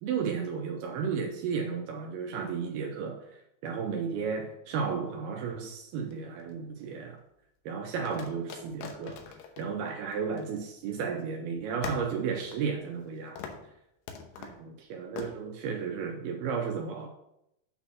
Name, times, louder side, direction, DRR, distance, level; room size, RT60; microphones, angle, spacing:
voice 1, 0.0-3.2 3.6-7.2 7.7-9.2 9.6-13.4 14.4-17.1, right 6 dB, 85° right, 2 dB, 2.2 m, -33 dB
sound 1, 6.0-6.9 8.1-11.0 11.3-11.4 11.8-13.1 13.4-13.7 14.1-14.6 15.2-15.3, left 6 dB, 80° left, 2.9 m, -43 dB
8.8 x 4.1 x 5.7 m, 0.82 s
omnidirectional pair, 5.2 m